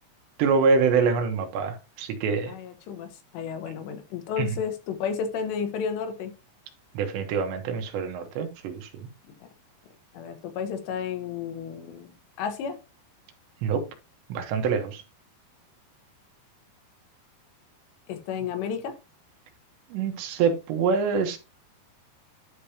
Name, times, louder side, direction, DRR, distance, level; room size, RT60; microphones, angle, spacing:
voice 1, 0.4-2.6 4.4-4.6 7.0-9.1 13.6-13.9 14.3-15.0 19.9-21.4, right 5 dB, 90° right, 3.5 m, -25 dB
voice 2, 2.5-3.1 3.3-6.3 9.4-9.5 10.1-12.1 12.4-12.8 18.1-18.9, left 7 dB, 85° left, 3.4 m, -32 dB
12.0 x 5.0 x 2.9 m
omnidirectional pair, 4.9 m